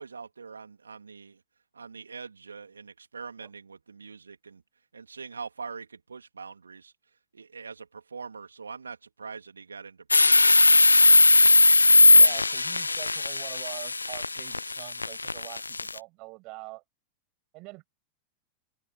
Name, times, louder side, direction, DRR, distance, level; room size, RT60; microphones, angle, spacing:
voice 1, 0.0-1.4 1.7-4.6 4.9-10.6, right 5 dB, 75° right, 2.4 m, -43 dB
sound 1, 10.1-16.0, left 3 dB, 80° left, 0.4 m, -18 dB
voice 2, 12.1-16.8 17.5-17.9, right 25 dB, 40° right, 6.6 m, -44 dB
open air
figure-of-eight pair, 90°, 0 cm